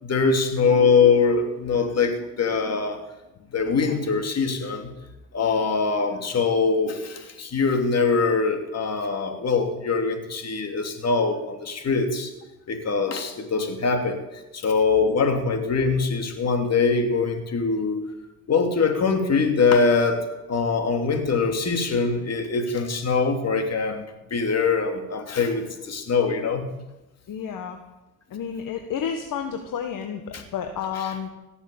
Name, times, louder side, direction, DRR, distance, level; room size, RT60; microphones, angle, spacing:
voice 1, 0.0-3.0 3.5-4.9 5.3-12.3 12.7-14.2 14.5-18.0 18.5-24.0 24.3-26.6 30.3-30.4 31.0-31.1, left 4 dB, 40° left, 5 dB, 3.1 m, -23 dB
voice 2, 27.3-27.8 28.3-31.3, left 7 dB, 55° left, 5 dB, 1.7 m, -31 dB
17.0 x 7.3 x 8.7 m, 0.99 s
supercardioid pair, 70°, 38 cm